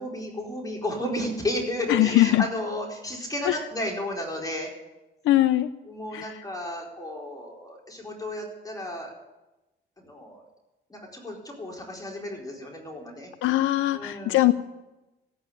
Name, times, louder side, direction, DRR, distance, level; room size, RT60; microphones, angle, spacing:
voice 1, 0.0-4.7 5.8-9.1 10.0-10.4 10.9-13.3 13.9-14.5, left 1 dB, 20° left, -1 dB, 4.3 m, -33 dB
voice 2, 1.9-2.4 3.5-3.6 5.3-5.7 6.1-6.2 13.4-14.5, left 15 dB, 85° left, 9 dB, 0.7 m, -21 dB
16.0 x 8.9 x 9.8 m, 1.0 s
cardioid pair, 90°, 20 cm